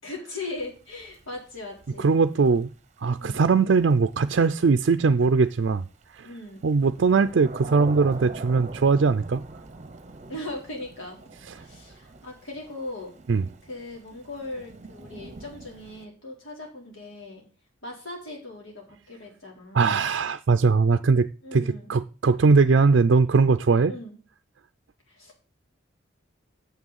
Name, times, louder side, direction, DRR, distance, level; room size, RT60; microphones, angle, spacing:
voice 1, 0.0-2.2 3.2-3.5 6.2-6.7 8.1-8.4 10.3-11.2 11.5-13.1 13.6-17.5 17.8-20.0 21.4-21.9 23.9-24.2 25.1-25.4, left 2 dB, 85° left, -1 dB, 4.1 m, -39 dB
Thunder / Rain, 0.6-16.1, right 2 dB, 35° right, 0.8 m, -43 dB
voice 2, 2.0-2.7 3.0-5.8 6.1-6.3 6.6-9.4 13.3-13.5 19.7-23.9, right 4 dB, 65° right, 9 dB, 0.4 m, -20 dB
7.3 x 6.2 x 7.3 m, 0.37 s
head